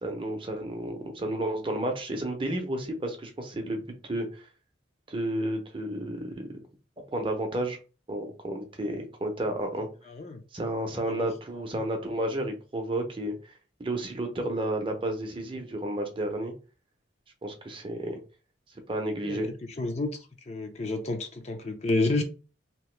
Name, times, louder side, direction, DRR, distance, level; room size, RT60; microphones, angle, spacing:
voice 1, 0.0-4.5 5.1-6.5 7.1-7.8 8.1-9.9 10.5-13.5 13.8-16.5 17.4-18.2 18.9-19.5, right 1 dB, 25° right, 0.6 m, -31 dB
voice 2, 10.1-10.4 10.9-11.3 19.2-19.4 19.8-22.2, left 2 dB, 35° left, 0.6 m, -30 dB
2.9 x 2.6 x 3.2 m
head